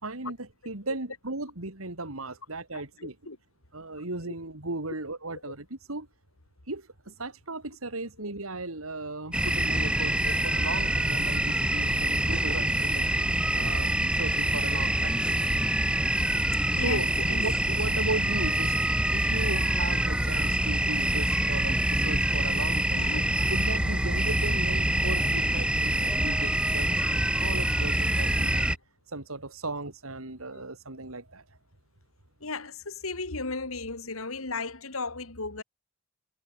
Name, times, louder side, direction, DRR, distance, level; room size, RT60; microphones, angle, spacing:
voice 1, 0.0-3.2 3.7-6.1 6.7-10.2 10.4-13.0 13.3-15.2 16.3-16.4 16.8-23.1 23.5-28.7 29.1-31.4, right 2 dB, 90° right, 3.1 m, -36 dB
voice 2, 2.7-3.4 4.0-4.1 10.2-10.3 16.7-17.4 22.9-23.3 32.4-35.6, left 3 dB, 85° left, 2.9 m, -35 dB
sound 1, 9.3-28.8, right 1 dB, 5° right, 1.0 m, -26 dB
head